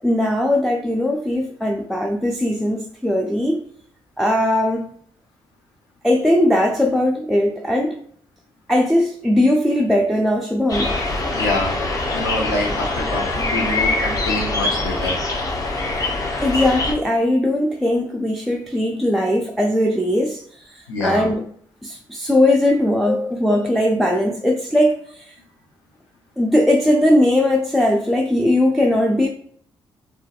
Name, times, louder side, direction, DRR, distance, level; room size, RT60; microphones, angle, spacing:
voice 1, 0.0-3.6 4.2-4.9 6.0-8.0 8.7-10.9 16.4-20.4 20.7-21.5 21.8-25.3 26.4-29.3, left 1 dB, ahead, 0.3 m, -19 dB
sound 1, 10.7-16.9, left 2 dB, 35° left, 0.6 m, -23 dB
voice 2, 11.3-11.8 12.1-15.2 20.9-21.3 23.1-23.6, left 2 dB, 85° left, 0.5 m, -26 dB
2.5 x 2.2 x 2.3 m
hypercardioid pair, 45°, 11 cm